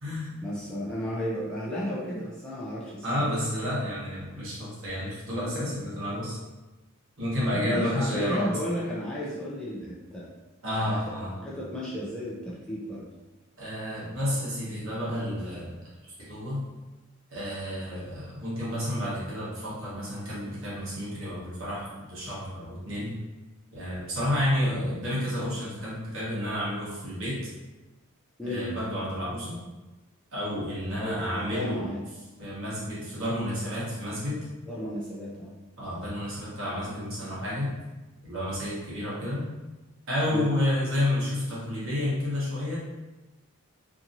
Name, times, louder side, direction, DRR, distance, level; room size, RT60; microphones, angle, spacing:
voice 1, 0.4-3.3 7.5-10.3 10.8-11.0 11.4-13.1 28.4-28.7 31.0-32.0 34.7-35.5 40.3-40.5, equal, 5° left, -8 dB, 0.3 m, -33 dB
voice 2, 3.0-6.4 7.2-8.5 10.6-11.3 13.6-15.8 16.3-16.6 17.3-23.1 23.7-27.5 28.4-29.6 30.3-31.8 32.4-34.4 35.8-37.7 38.2-39.5 40.1-42.8, left 1 dB, 60° right, -8 dB, 1.1 m, -30 dB
2.8 x 2.6 x 2.5 m, 1.1 s
head